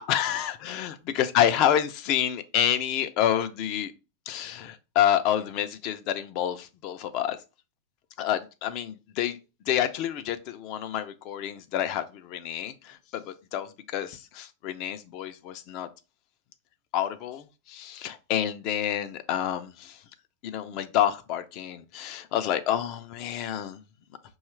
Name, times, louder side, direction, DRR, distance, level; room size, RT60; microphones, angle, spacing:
voice 1, 0.1-3.9 4.3-7.4 8.2-9.4 9.7-15.9 16.9-20.0 20.4-23.8, left 10 dB, 50° left, 0.5 m, -28 dB
5.4 x 2.3 x 3.1 m
supercardioid pair, 130°, 0 cm